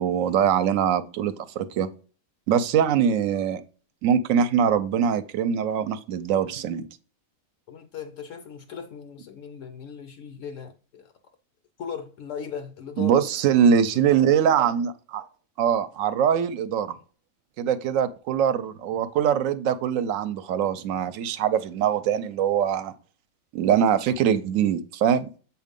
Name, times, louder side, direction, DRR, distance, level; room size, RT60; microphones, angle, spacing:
voice 1, 0.0-1.9 2.5-3.6 4.0-6.8 13.0-15.2 15.6-17.0 17.6-22.9 23.5-25.3, right 8 dB, 75° right, 0.9 m, -23 dB
voice 2, 7.7-11.1 11.8-13.2 13.9-14.1, left 7 dB, 70° left, 0.9 m, -38 dB
7.3 x 2.5 x 5.2 m
omnidirectional pair, 1.4 m